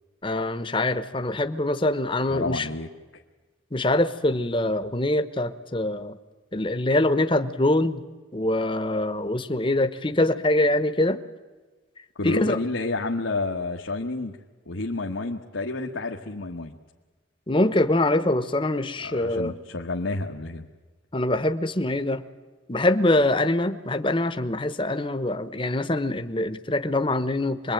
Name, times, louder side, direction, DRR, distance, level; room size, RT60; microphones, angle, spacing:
voice 1, 0.2-2.7 3.7-6.2 6.5-8.0 8.3-11.2 12.2-12.6 17.5-19.6 21.1-22.2 22.7-27.7, left 1 dB, 25° left, 11 dB, 1.0 m, -24 dB
voice 2, 2.3-3.2 12.2-14.4 14.7-16.8 19.0-20.7, left 2 dB, 85° left, 0 dB, 1.4 m, -30 dB
25.5 x 21.5 x 9.2 m, 1.3 s
head